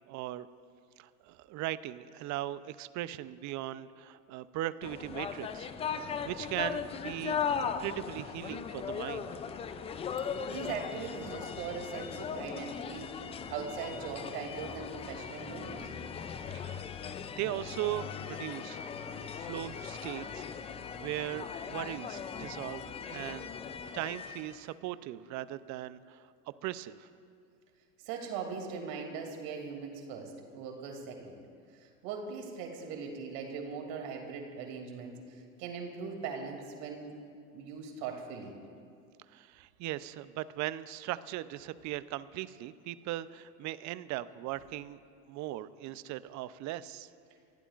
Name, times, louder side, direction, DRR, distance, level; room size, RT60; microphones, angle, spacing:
voice 1, 0.1-0.5 1.0-5.7 6.2-9.3 16.5-16.8 17.4-20.5 21.0-23.5 23.9-26.3 26.6-27.1 39.3-45.0 45.3-47.1, right 14 dB, 35° right, 15 dB, 0.6 m, -39 dB
sound 1, 4.8-24.6, left 6 dB, 15° left, 0.3 m, -38 dB
voice 2, 10.5-13.1 13.5-15.9 28.0-31.4 31.7-37.1 37.5-38.5, right 5 dB, 55° right, 2 dB, 2.8 m, -40 dB
29.5 x 15.5 x 2.5 m, 2.3 s
hypercardioid pair, 100°, 48 cm